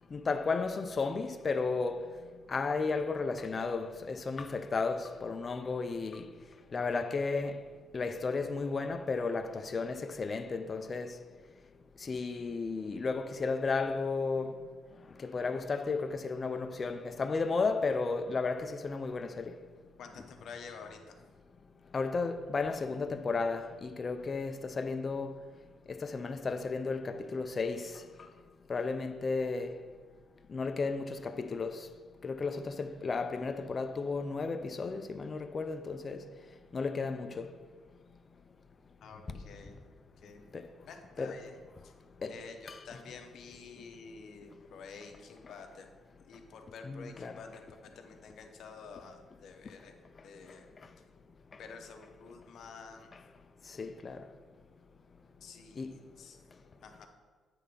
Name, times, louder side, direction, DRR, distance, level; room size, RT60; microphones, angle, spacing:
voice 1, 0.1-2.1 2.5-6.3 6.7-7.6 7.9-11.2 12.0-14.6 15.2-19.6 21.9-25.4 25.9-27.9 28.7-29.7 30.5-31.9 32.2-36.2 36.7-37.5 40.5-40.6 41.2-41.4 42.2-42.4 42.7-42.8 46.8-47.4 53.8-54.2 55.8-55.9, left 4 dB, 35° left, 0.4 m, -33 dB
voice 2, 20.0-21.2 39.0-39.8 40.2-40.4 40.9-41.6 41.8-41.9 42.3-45.9 46.3-49.9 50.2-50.7 51.6-53.1 55.4-56.4 56.8-57.1, left 5 dB, 65° left, 0.8 m, -49 dB
8.4 x 3.3 x 5.3 m
cardioid pair, 110°, 0 cm